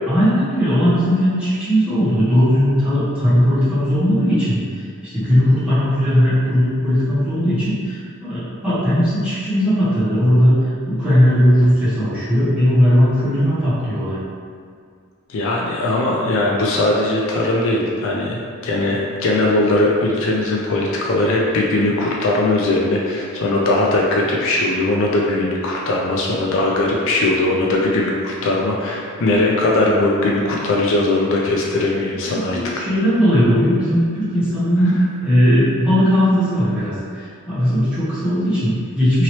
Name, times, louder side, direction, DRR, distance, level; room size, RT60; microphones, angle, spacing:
voice 1, 0.1-4.8 5.1-14.2 32.2-34.9 35.2-39.2, equal, 5° right, -14 dB, 1.2 m, -17 dB
voice 2, 15.3-32.6, left 2 dB, 65° left, -2 dB, 0.4 m, -19 dB
2.9 x 2.9 x 3.0 m, 2.1 s
head